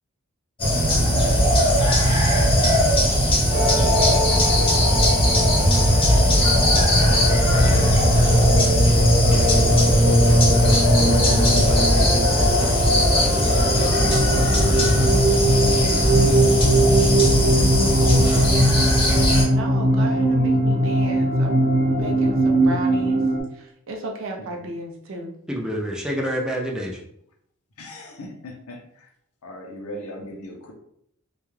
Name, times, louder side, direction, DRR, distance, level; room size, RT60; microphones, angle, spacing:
sound 1, 0.6-19.4, equal, 25° left, 0.7 m, -19 dB
sound 2, 3.5-23.4, equal, 25° right, 0.8 m, -20 dB
sound 3, 5.5-10.7, equal, 90° right, 0.8 m, -26 dB
voice 1, 6.9-7.4 25.5-27.0, equal, 5° right, -1 dB, 0.3 m, -28 dB
voice 2, 7.5-8.4 9.2-12.6 12.9-14.6 15.8-17.2 17.5-18.2 27.8-29.1 29.4-30.7, left 1 dB, 80° left, 0 dB, 0.7 m, -38 dB
voice 3, 19.5-23.2 23.5-25.3, right 2 dB, 60° right, 1 dB, 0.5 m, -34 dB
2.3 x 2.2 x 3.1 m, 0.71 s
head